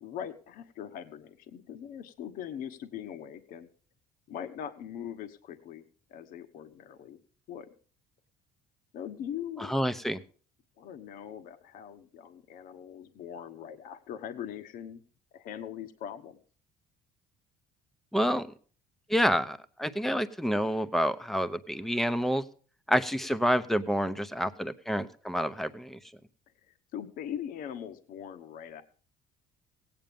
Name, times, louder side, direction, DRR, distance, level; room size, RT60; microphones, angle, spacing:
voice 1, 0.0-3.7 4.3-5.8 6.1-7.2 7.5-7.7 8.9-9.7 10.8-15.0 15.3-16.4 26.7-28.8, left 9 dB, 65° left, 9 dB, 1.2 m, -41 dB
voice 2, 9.6-10.2 18.1-18.5 19.1-22.4 22.9-26.0, equal, ahead, 12 dB, 0.8 m, -28 dB
17.5 x 9.0 x 5.3 m, 0.41 s
cardioid pair, 150°, 16 cm